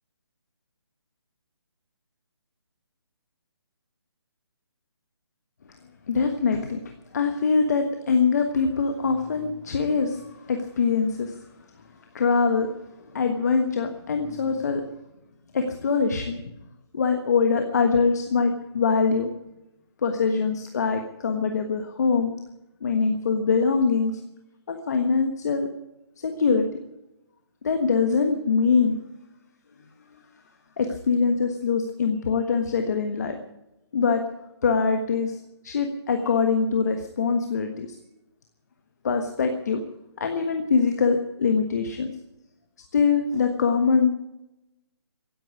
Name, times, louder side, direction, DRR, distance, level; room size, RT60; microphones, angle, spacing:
voice 1, 6.1-11.5 12.1-12.7 13.0-14.8 15.5-16.4 16.9-19.3 20.0-22.3 22.8-24.2 24.7-25.7 26.2-26.8 27.6-29.0 30.8-33.4 33.9-34.2 34.6-35.3 35.6-38.0 39.0-39.8 40.2-42.1 42.9-44.1, left 5 dB, 40° left, 5 dB, 1.4 m, -23 dB
16.5 x 9.0 x 9.6 m, 0.92 s
hypercardioid pair, 170°, 14 cm